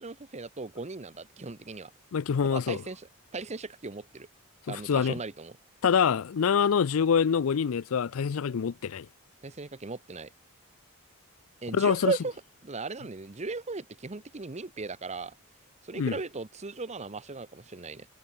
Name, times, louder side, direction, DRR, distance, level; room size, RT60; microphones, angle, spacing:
voice 1, 0.0-1.9 2.4-3.1 3.3-4.3 4.7-5.6 9.4-10.3 11.6-12.3 12.6-15.3 15.8-18.1, right 3 dB, 30° right, 0.9 m, -37 dB
voice 2, 2.1-2.8 4.7-5.2 5.8-9.1 11.7-12.1 15.9-16.2, left 6 dB, 65° left, 0.4 m, -25 dB
head